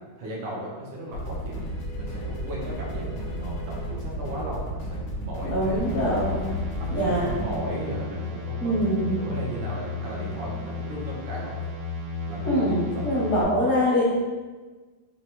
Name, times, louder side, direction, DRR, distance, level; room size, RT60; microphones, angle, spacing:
voice 1, 0.2-1.7 1.9-6.3 6.8-11.5 12.3-13.3, right 1 dB, 70° right, -3 dB, 1.5 m, -36 dB
sound 1, 1.1-7.6, equal, 90° left, 1.6 m, -33 dB
voice 2, 5.5-6.5 6.9-7.3 8.6-9.2 12.4-14.0, equal, 60° left, -8 dB, 0.8 m, -24 dB
sound 2, 5.8-13.4, left 4 dB, 90° right, 1.7 m, -34 dB
4.6 x 2.1 x 2.9 m, 1.3 s
omnidirectional pair, 2.3 m